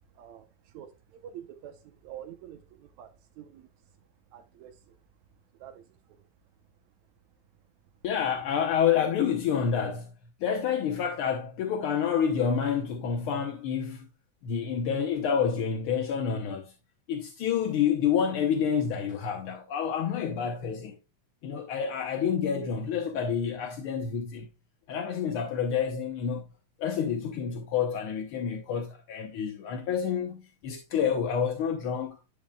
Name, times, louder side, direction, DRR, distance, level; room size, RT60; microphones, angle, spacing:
voice 1, 0.1-3.7 4.3-5.0 5.5-6.3, right 10 dB, 80° right, 2.0 m, -47 dB
voice 2, 8.0-10.1 10.4-14.1 14.4-16.7 17.1-21.0 21.4-24.5 24.9-26.4 26.8-32.2, left 7 dB, 70° left, 1.3 m, -28 dB
10.5 x 5.6 x 2.2 m
omnidirectional pair, 3.4 m